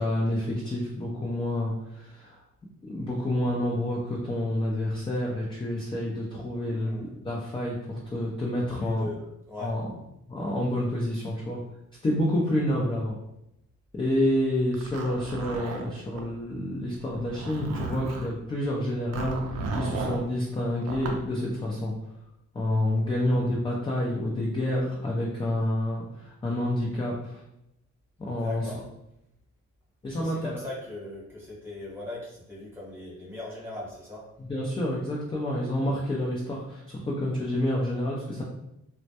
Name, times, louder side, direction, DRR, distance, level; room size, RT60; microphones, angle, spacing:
voice 1, 0.0-2.4 2.8-9.1 9.6-9.8 10.3-11.6 12.0-13.2 14.0-21.9 22.5-27.4 28.2-28.7 30.0-30.6 34.4-38.4, left 1 dB, 15° left, -3 dB, 0.4 m, -28 dB
voice 2, 6.6-7.1 8.7-9.2 9.5-9.7 12.7-12.9 23.1-23.4 28.4-28.8 30.2-34.2, left 2 dB, 10° right, -6 dB, 1.0 m, -39 dB
Zipper (clothing), 14.7-16.3 17.1-18.3 19.1-20.2 20.8-21.2, right 3 dB, 60° right, 0.5 m, -34 dB
2.1 x 2.1 x 2.8 m, 0.82 s
cardioid pair, 90°, 30 cm